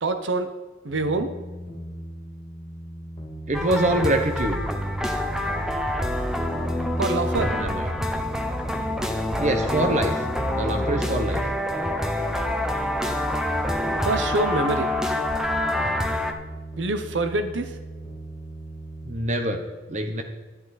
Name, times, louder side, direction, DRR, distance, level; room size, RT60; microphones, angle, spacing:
voice 1, 0.0-0.5 0.8-1.3 7.0-7.5 14.0-14.9 16.8-17.8, right 2 dB, 90° right, 8 dB, 0.9 m, -25 dB
sound 1, 0.9-11.6 13.7-19.2, right 2 dB, 25° left, 2.4 m, -39 dB
sound 2, 3.5-16.3, left 1 dB, 5° right, 0.7 m, -26 dB
voice 2, 3.5-4.6 7.4-7.9 9.4-10.3 10.5-11.5 19.0-20.2, right 1 dB, 40° right, 5 dB, 1.2 m, -25 dB
11.5 x 10.5 x 4.1 m, 1.3 s
head